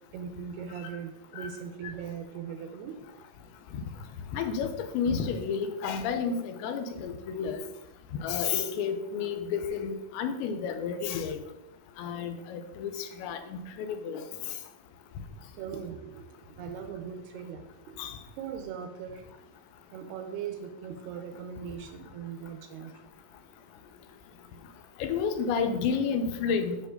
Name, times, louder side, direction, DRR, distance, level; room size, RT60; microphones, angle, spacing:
voice 1, 0.1-3.0 15.6-19.2 19.9-22.9, right 7 dB, 80° right, 5 dB, 2.6 m, -40 dB
voice 2, 4.3-7.6 8.2-11.4 12.0-14.2 18.0-18.2 25.0-26.8, left 6 dB, 85° left, 7 dB, 3.0 m, -31 dB
9.7 x 5.9 x 3.8 m, 0.91 s
omnidirectional pair, 5.0 m